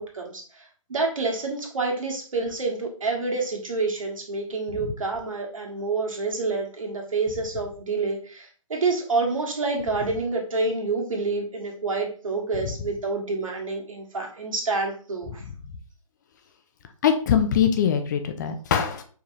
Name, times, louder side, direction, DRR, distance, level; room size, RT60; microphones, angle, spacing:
voice 1, 0.0-15.4, right 3 dB, 70° right, 0 dB, 1.6 m, -28 dB
voice 2, 17.0-19.0, left 8 dB, 30° left, 7 dB, 0.5 m, -22 dB
4.9 x 3.8 x 2.6 m, 0.41 s
figure-of-eight pair, 135°, 18 cm